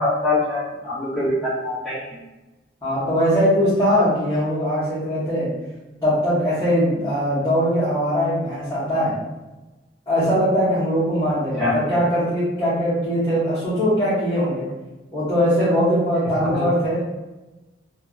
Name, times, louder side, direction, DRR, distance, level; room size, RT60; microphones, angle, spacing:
voice 1, 0.0-2.0 11.6-11.7 16.3-16.7, left 2 dB, ahead, -12 dB, 1.3 m, -23 dB
voice 2, 2.8-5.5 6.0-9.2 10.1-14.7 15.1-17.0, equal, 20° left, -15 dB, 1.1 m, -21 dB
3.2 x 2.1 x 2.4 m, 1.1 s
head